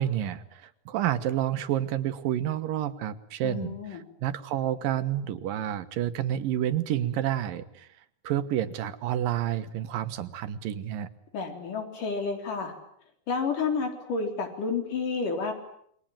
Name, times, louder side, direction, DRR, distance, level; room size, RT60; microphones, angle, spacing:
voice 1, 0.0-7.9 8.2-11.1, right 11 dB, 80° right, 11 dB, 3.0 m, -29 dB
voice 2, 3.4-4.0 11.3-12.7 13.3-15.5, left 4 dB, 65° left, 4 dB, 5.5 m, -30 dB
28.0 x 23.5 x 8.9 m, 0.68 s
omnidirectional pair, 3.9 m